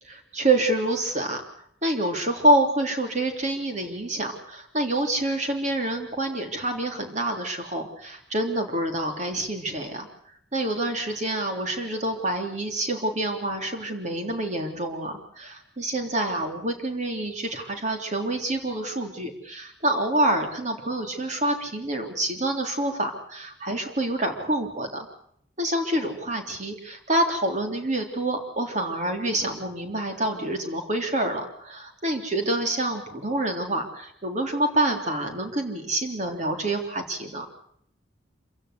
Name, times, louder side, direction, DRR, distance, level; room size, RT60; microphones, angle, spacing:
voice 1, 0.1-1.4 1.8-10.1 10.5-25.1 25.6-37.5, right 1 dB, 40° right, 5 dB, 3.5 m, -27 dB
26.5 x 16.0 x 8.2 m, 0.68 s
head